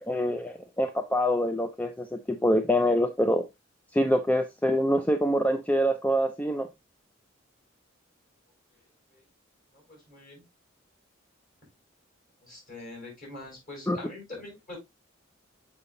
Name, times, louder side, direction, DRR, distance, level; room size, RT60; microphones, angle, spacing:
voice 1, 0.0-3.4 3.9-6.7 13.9-14.0, equal, 10° left, 0.4 m, -25 dB
voice 2, 9.7-10.4 12.4-14.8, left 2 dB, 40° left, 4.7 m, -44 dB
6.8 x 5.7 x 2.5 m
head